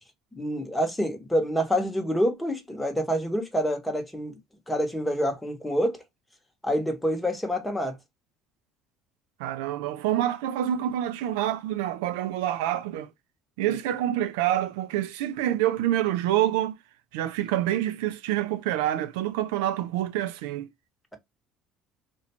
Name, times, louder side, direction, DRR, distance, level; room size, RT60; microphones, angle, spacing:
voice 1, 0.4-4.4 4.7-6.0 6.6-8.0 13.7-13.8, equal, 10° left, 0.9 m, -27 dB
voice 2, 9.4-13.1 13.6-16.8 17.1-20.7, right 12 dB, 85° right, 0.3 m, -27 dB
2.5 x 2.2 x 2.8 m
supercardioid pair, 80°, 0 cm